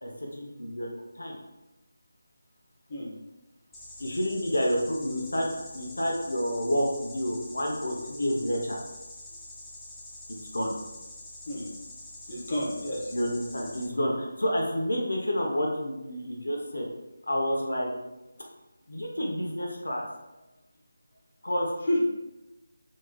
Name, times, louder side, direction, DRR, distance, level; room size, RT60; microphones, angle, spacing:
voice 1, 0.0-0.9 1.1-1.4 4.0-5.5 5.7-8.8 10.5-10.7 13.1-16.9 17.2-17.9 18.9-20.0 21.4-21.7, equal, 85° left, 0 dB, 0.7 m, -29 dB
sound 1, 3.7-13.9, left 1 dB, 5° left, 0.4 m, -45 dB
voice 2, 12.2-13.1 21.8-22.0, left 1 dB, 35° left, -4 dB, 0.9 m, -30 dB
3.6 x 3.1 x 2.2 m, 1.0 s
figure-of-eight pair, 165°, 0 cm